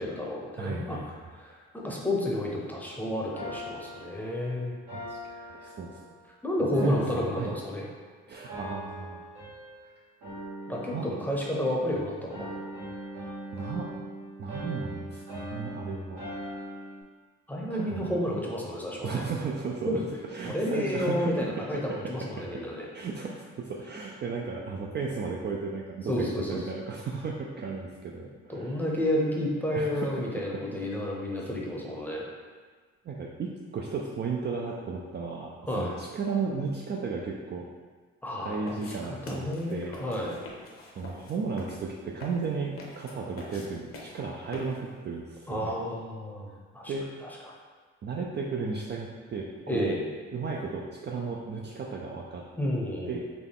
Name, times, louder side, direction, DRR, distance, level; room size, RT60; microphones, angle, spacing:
voice 1, 0.0-1.0 1.4-4.7 6.4-7.8 10.7-12.7 17.5-19.2 19.9-20.0 20.4-22.9 26.1-26.6 28.5-32.3 35.7-35.9 38.2-40.4 45.5-46.9 47.2-47.5 49.7-50.1 52.6-53.2, left 1 dB, 5° left, -3 dB, 0.7 m, -31 dB
voice 2, 0.6-1.6 5.1-5.2 5.5-6.0 6.8-7.5 8.3-9.2 10.8-11.1 13.5-13.9 14.4-16.2 17.7-18.1 19.0-19.9 20.2-21.5 21.9-22.0 22.4-22.6 22.9-28.8 29.7-30.4 31.3-31.5 33.0-37.7 38.4-40.0 41.0-45.8 46.9-47.1 48.0-50.0 50.3-52.4 53.1-53.2, right 4 dB, 35° right, -2 dB, 0.4 m, -34 dB
sound 1, 3.3-6.3 6.7-8.1 8.5-9.9 10.2-11.9 12.3-17.0, equal, 80° right, 1.5 m, -41 dB
sound 2, 38.7-45.0, left 2 dB, 45° left, 0.8 m, -46 dB
4.0 x 2.2 x 3.6 m, 1.5 s
cardioid pair, 90°, 30 cm